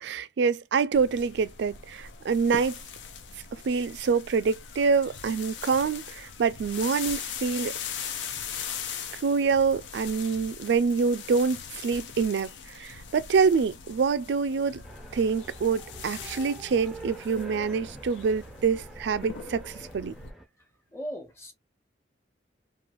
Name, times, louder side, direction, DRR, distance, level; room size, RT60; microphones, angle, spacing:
voice 1, 0.0-2.8 3.6-7.7 9.2-12.5 12.8-14.8 15.1-20.1, right 5 dB, 70° right, 0.3 m, -26 dB
sound 1, 0.9-20.3, left 7 dB, 75° left, 0.5 m, -40 dB
sound 2, 14.8-20.5, right 2 dB, ahead, 0.4 m, -45 dB
voice 2, 20.9-21.5, equal, 15° left, 0.8 m, -37 dB
3.0 x 2.4 x 2.3 m
head